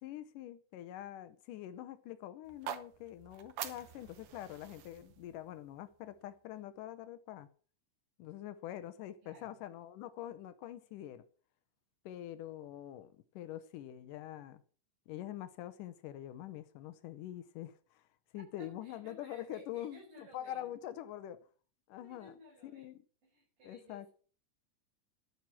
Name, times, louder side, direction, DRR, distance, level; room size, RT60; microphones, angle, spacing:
voice 1, 0.0-7.5 8.2-11.3 12.1-14.6 15.1-18.1 18.3-21.5 21.9-22.9 23.6-24.1, left 12 dB, 85° left, 2.4 m, -45 dB
sound 1, 2.4-6.6, right 9 dB, 65° right, 1.5 m, -47 dB
voice 2, 9.2-9.5 18.8-20.7 22.0-22.9 23.2-24.1, right 1 dB, 80° right, 6.6 m, -57 dB
13.5 x 6.3 x 7.3 m
omnidirectional pair, 3.6 m